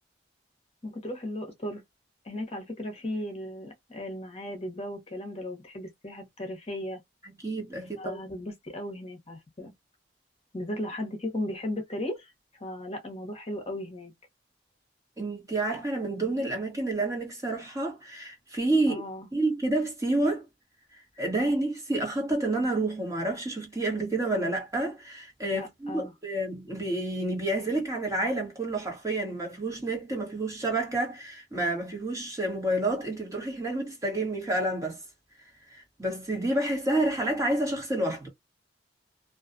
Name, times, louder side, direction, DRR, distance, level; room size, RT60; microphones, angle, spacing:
voice 1, 0.8-1.8 2.2-7.0 8.0-9.7 10.5-12.3 12.6-14.1 18.9-19.3 21.1-21.2 25.5-26.1, left 1 dB, 35° left, 0.9 m, -36 dB
voice 2, 7.4-8.2 15.2-19.0 19.3-20.5 21.2-35.0 35.7-38.3, right 2 dB, 20° right, 1.2 m, -29 dB
2.5 x 2.3 x 2.4 m
head